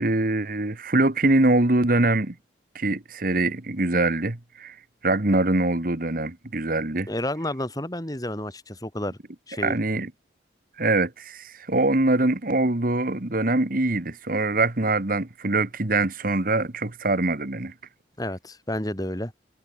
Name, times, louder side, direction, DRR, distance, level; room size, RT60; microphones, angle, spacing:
voice 1, 0.0-2.4 2.7-4.7 5.0-7.1 9.6-10.1 10.8-17.7, right 2 dB, 50° right, 1.5 m, -23 dB
voice 2, 7.1-9.2 9.5-9.8 18.2-19.3, left 1 dB, 20° left, 3.2 m, -30 dB
head